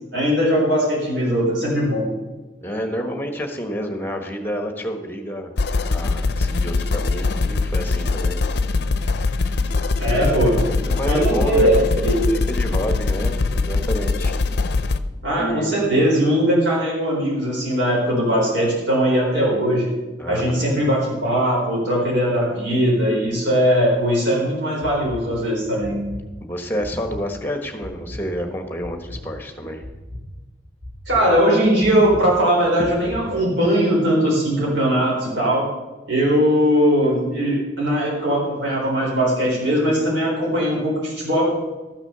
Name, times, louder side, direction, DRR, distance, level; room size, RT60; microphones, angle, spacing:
voice 1, 0.1-2.1 10.0-10.6 11.0-12.2 15.2-19.9 20.3-26.0 31.1-35.7 36.1-41.4, equal, 75° right, -3 dB, 4.0 m, -20 dB
voice 2, 2.6-5.5 5.9-8.4 10.1-11.7 12.0-14.3 15.4-15.9 20.2-20.7 26.4-29.8, equal, 10° left, 5 dB, 1.2 m, -29 dB
sound 1, 5.6-15.0, left 3 dB, 60° left, 0.5 m, -22 dB
sound 2, 24.8-25.2 25.8-26.2 26.8-27.2 27.8-28.2 28.8-29.2 29.8-30.2 30.8-31.2 31.8-32.2 32.8-33.2, left 1 dB, 55° right, 4.4 m, -35 dB
13.0 x 6.1 x 6.7 m, 1.2 s
head